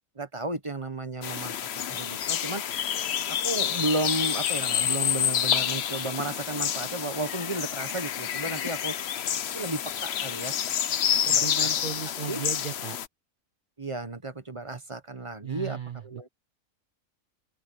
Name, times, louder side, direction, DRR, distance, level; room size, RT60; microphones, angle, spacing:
voice 1, 0.2-2.6 3.3-9.0 9.5-10.5 11.2-11.5 12.3-12.4 13.8-16.3, right 2 dB, 25° right, 1.2 m, -33 dB
sound 1, 1.2-13.1, left 9 dB, 55° left, 0.9 m, -28 dB
voice 2, 11.2-13.0 15.4-16.3, right 7 dB, 60° right, 0.5 m, -36 dB
open air
omnidirectional pair, 1.5 m